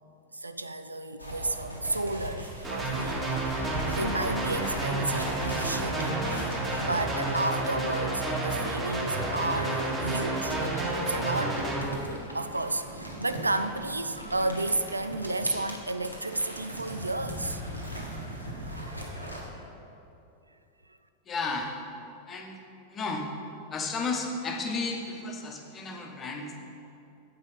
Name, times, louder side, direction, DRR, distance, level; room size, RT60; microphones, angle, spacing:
voice 1, 0.3-6.2 6.8-17.6 18.1-18.3 18.6-19.7, right 2 dB, 80° right, 10 dB, 0.3 m, -32 dB
sound 1, 1.2-7.8 9.0-19.4, equal, 90° left, 1.2 m, -39 dB
sound 2, 2.6-11.8, right 2 dB, 15° right, 1.8 m, -30 dB
voice 2, 21.2-21.7 22.3-22.6 22.9-23.3 23.7-26.6, left 3 dB, 25° left, 2 dB, 1.0 m, -33 dB
8.5 x 5.4 x 5.2 m, 2.7 s
figure-of-eight pair, 90°, 0 cm